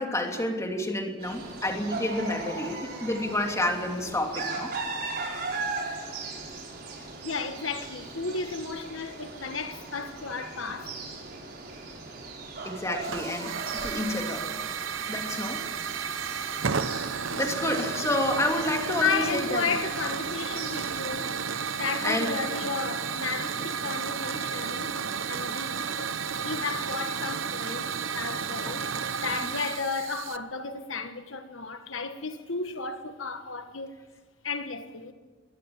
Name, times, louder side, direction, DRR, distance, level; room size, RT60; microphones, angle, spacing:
voice 1, 0.0-4.7 12.6-14.5 15.1-15.6 17.3-19.6 22.0-22.3 28.6-29.0, left 1 dB, 15° left, 3.0 m, -29 dB
sound 1, 1.2-21.0, right 3 dB, 50° right, 5.6 m, -38 dB
voice 2, 7.2-11.2 17.3-17.9 18.9-21.4 21.8-26.2 26.4-27.8 28.1-33.9 34.4-35.1, left 4 dB, 80° left, 1.4 m, -33 dB
Hiss / Fire, 13.0-30.4, right 6 dB, 75° right, 0.8 m, -32 dB
23.0 x 19.0 x 7.3 m
head